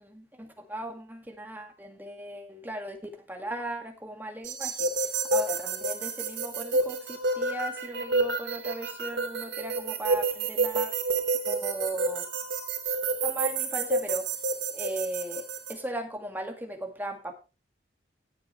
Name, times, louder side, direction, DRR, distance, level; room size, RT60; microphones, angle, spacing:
voice 1, 0.0-10.9 11.5-12.3 13.2-14.3 14.7-17.3, right 1 dB, 10° right, 4 dB, 2.1 m, -37 dB
sound 1, 4.4-15.7, right 3 dB, 85° right, 3.1 m, -29 dB
18.0 x 7.8 x 3.2 m, 0.30 s
head